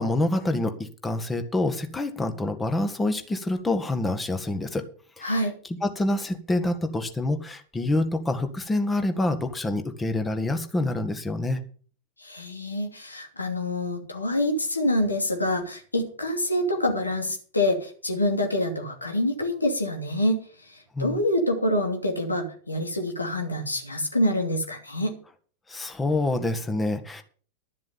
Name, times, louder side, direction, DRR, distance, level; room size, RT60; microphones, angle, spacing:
voice 1, 0.0-4.9 5.2-5.4 5.8-11.6 20.9-21.2 25.7-27.2, left 2 dB, 10° left, 8 dB, 1.6 m, -27 dB
voice 2, 5.2-5.5 12.2-20.4 21.0-25.2, left 1 dB, 80° left, 4 dB, 2.7 m, -26 dB
12.0 x 7.4 x 6.9 m, 0.43 s
figure-of-eight pair, 90°, 0 cm